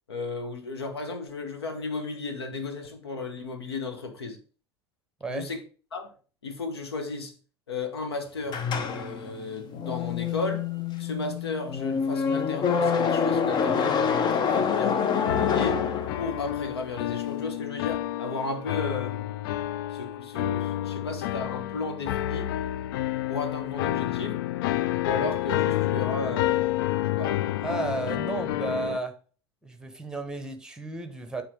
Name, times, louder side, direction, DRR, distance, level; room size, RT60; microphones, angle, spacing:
voice 1, 0.1-4.4 5.3-5.6 5.9-6.1 6.4-7.4 7.7-10.6 11.0-15.8 16.2-19.4 19.9-22.5 23.3-24.4 25.0-26.6 27.2-27.4, left 3 dB, 75° left, 1.2 m, -34 dB
sound 1, 8.5-16.6, left 6 dB, 35° left, 0.7 m, -26 dB
sound 2, 15.3-29.0, left 14 dB, 55° left, 0.4 m, -29 dB
voice 2, 27.6-29.2 29.6-31.4, right 3 dB, 5° right, 1.1 m, -33 dB
8.5 x 3.8 x 3.5 m
figure-of-eight pair, 75°, 13 cm